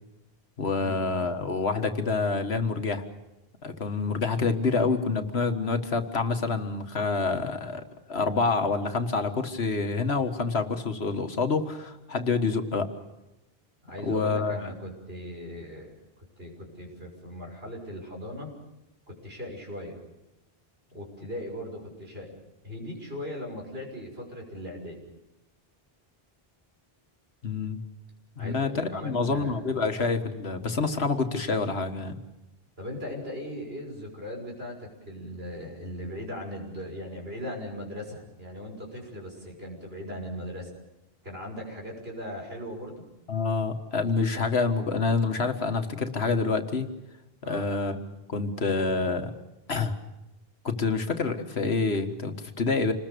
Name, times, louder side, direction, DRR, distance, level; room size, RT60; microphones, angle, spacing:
voice 1, 0.6-3.0 3.6-12.9 14.0-14.7 27.4-27.8 28.4-32.2 43.3-46.9 47.4-48.0 48.3-49.3 49.7-50.0 50.6-52.9, left 4 dB, 85° left, 7 dB, 1.9 m, -27 dB
voice 2, 13.8-18.5 19.1-20.0 20.9-22.3 22.6-25.0 28.4-29.9 32.8-40.7 41.2-43.0 47.4-47.7, left 1 dB, 70° right, 0 dB, 6.4 m, -39 dB
27.5 x 20.5 x 6.9 m, 0.94 s
omnidirectional pair, 1.0 m